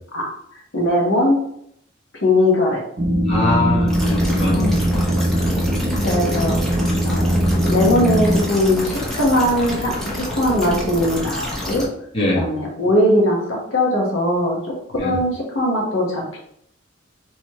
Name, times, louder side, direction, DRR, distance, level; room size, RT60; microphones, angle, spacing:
voice 1, 0.7-1.4 2.2-2.8 4.6-4.7 6.0-6.6 7.0-11.8 12.3-16.4, left 1 dB, 80° left, -2 dB, 1.3 m, -20 dB
sound 1, 3.0-8.4, right 1 dB, 40° right, 0.5 m, -20 dB
voice 2, 3.3-4.8 5.5-5.9 12.1-12.5 15.0-15.2, left 2 dB, 30° left, -5 dB, 1.2 m, -23 dB
sound 2, 3.9-11.9, left 1 dB, ahead, 0.9 m, -28 dB
4.6 x 3.1 x 3.0 m, 0.72 s
head